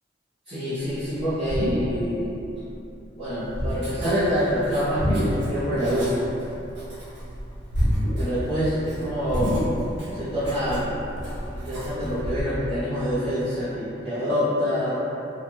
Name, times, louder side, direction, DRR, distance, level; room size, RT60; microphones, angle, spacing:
voice 1, 0.5-2.3 3.2-6.2 8.2-9.6 10.1-10.9 11.5-15.0, equal, 30° right, -17 dB, 0.8 m, -26 dB
sound 1, 1.1-2.3 2.5-2.9 3.4-4.1 4.8-5.6 5.9-6.9 7.2-8.4 8.7-8.8 9.3-10.1 10.5-12.4, equal, 65° left, 0.5 m, -27 dB
Writing, 3.4-12.3, equal, 70° right, 0.7 m, -41 dB
3.1 x 2.3 x 2.6 m, 2.9 s
head